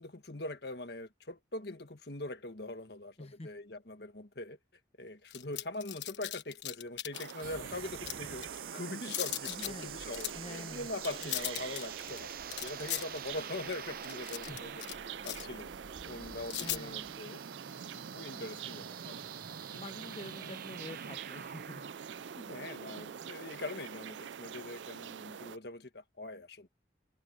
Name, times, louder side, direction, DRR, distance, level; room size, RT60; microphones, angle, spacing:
voice 1, 0.0-4.6 5.0-12.3 12.6-14.7 15.2-15.7 16.0-17.4 17.8-19.2 20.4-20.5 22.4-26.7, left 2 dB, 60° left, 1.7 m, -42 dB
voice 2, 3.2-3.5 9.5-9.9 10.3-11.0 14.4-15.0 16.6-17.0 19.7-21.9, left 2 dB, 35° left, 1.0 m, -47 dB
sound 1, 5.3-7.4 7.9-8.6 9.0-9.8 10.1-10.4 10.9-15.0 15.2-15.6 16.5-16.8, left 13 dB, 85° left, 1.3 m, -38 dB
sound 2, 7.1-25.6, right 8 dB, 85° right, 0.4 m, -46 dB
sound 3, 7.4-24.2, right 6 dB, 55° right, 0.8 m, -47 dB
head